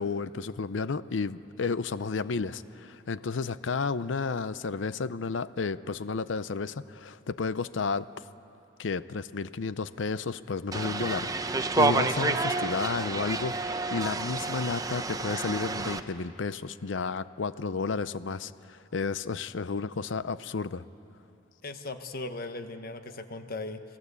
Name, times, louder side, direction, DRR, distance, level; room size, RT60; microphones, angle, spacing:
voice 1, 0.0-8.1 8.8-20.8, left 4 dB, 85° left, 15 dB, 0.6 m, -32 dB
sound 1, 10.7-16.0, right 3 dB, 20° right, 0.8 m, -29 dB
voice 2, 21.6-23.8, left 2 dB, 55° left, 8 dB, 1.3 m, -38 dB
28.0 x 18.5 x 8.3 m, 2.7 s
head